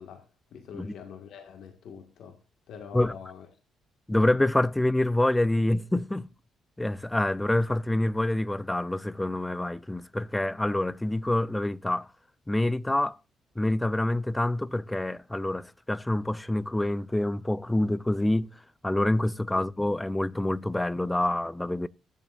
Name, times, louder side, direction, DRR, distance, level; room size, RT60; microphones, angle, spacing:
voice 1, 0.0-2.4 2.7-3.5 19.5-19.7, left 7 dB, 70° left, 1.9 m, -44 dB
voice 2, 4.1-6.3 6.8-12.1 12.5-13.2 13.6-18.5 18.8-21.9, left 1 dB, 10° left, 0.5 m, -26 dB
15.5 x 10.0 x 2.6 m
cardioid pair, 90°, 0 cm